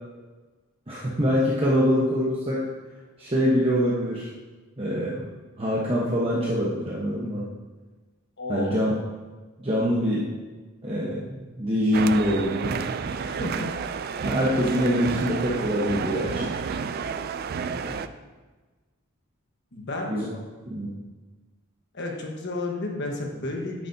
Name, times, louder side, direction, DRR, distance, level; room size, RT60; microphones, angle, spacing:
voice 1, 0.9-2.7 3.2-4.3 4.8-5.3 5.6-7.5 8.5-8.9 9.6-10.3 10.8-12.8 14.2-16.6 17.8-18.0 20.1-20.4 20.7-20.9, equal, 25° right, -6 dB, 1.0 m, -24 dB
voice 2, 8.4-8.8 13.1-13.7 19.7-20.1 21.9-23.9, left 2 dB, 55° left, 1 dB, 1.3 m, -32 dB
sound 1, 11.9-18.1, right 6 dB, 45° right, 0.3 m, -30 dB
10.0 x 8.2 x 2.7 m, 1.3 s
head